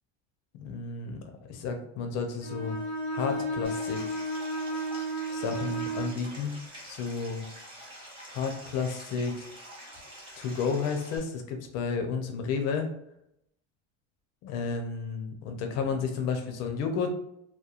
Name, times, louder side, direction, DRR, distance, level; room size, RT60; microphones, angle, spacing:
voice 1, 0.5-1.2 1.5-2.8 3.1-4.2 5.3-6.5 6.8-7.4 8.3-9.3 10.4-12.9 14.4-17.1, left 5 dB, 45° left, 5 dB, 0.5 m, -32 dB
Bowed string instrument, 2.4-6.2, right 1 dB, 65° right, 0.8 m, -33 dB
Stream, 3.6-11.2, equal, 15° right, 0.9 m, -47 dB
2.8 x 2.2 x 2.3 m, 0.77 s
cardioid pair, 150°, 35 cm